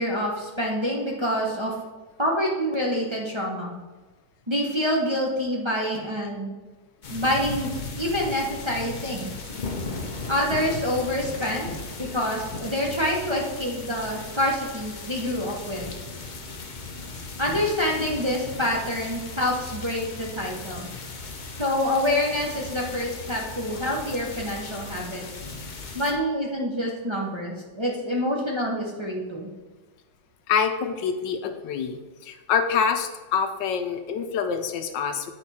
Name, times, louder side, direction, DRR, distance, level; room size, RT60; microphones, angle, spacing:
voice 1, 0.0-1.7 2.2-3.7 4.5-6.6 7.1-7.7 8.0-9.3 10.3-11.7 12.0-15.9 17.4-20.9 21.6-25.2 25.9-29.5, equal, 20° right, -3 dB, 0.7 m, -26 dB
sound 1, 7.0-26.1, left 3 dB, 85° left, 0.4 m, -37 dB
voice 2, 30.5-35.3, left 6 dB, 70° left, 7 dB, 1.2 m, -26 dB
8.3 x 5.2 x 4.2 m, 1.3 s
omnidirectional pair, 2.2 m